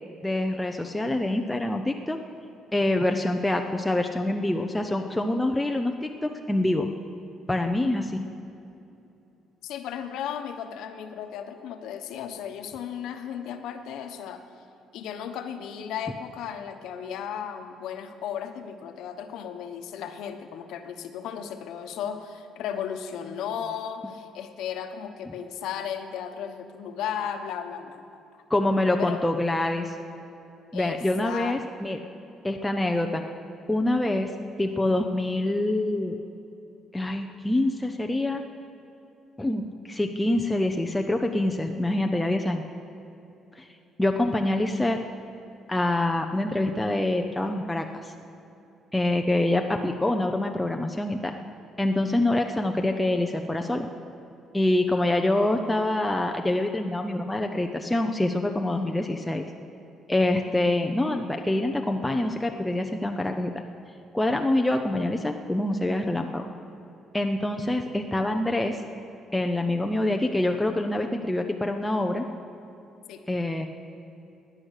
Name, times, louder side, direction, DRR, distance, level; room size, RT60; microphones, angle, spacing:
voice 1, 0.2-2.2 2.7-6.9 7.5-8.2 28.5-29.9 30.7-32.0 32.4-33.2 33.7-34.3 34.6-36.2 36.9-38.4 39.4-42.6 43.5-43.7 44.0-45.0 45.7-48.1 48.9-51.3 51.8-53.9 54.5-59.4 60.1-63.5 64.1-66.5 67.1-68.8 69.3-72.3 73.3-73.7, left 1 dB, 10° left, 3 dB, 0.6 m, -25 dB
voice 2, 9.6-14.4 14.9-28.2 29.0-29.2 30.7-31.6 73.1-73.3, left 8 dB, 80° left, 7 dB, 1.1 m, -35 dB
16.5 x 10.0 x 6.5 m, 2.8 s
cardioid pair, 120°, 0 cm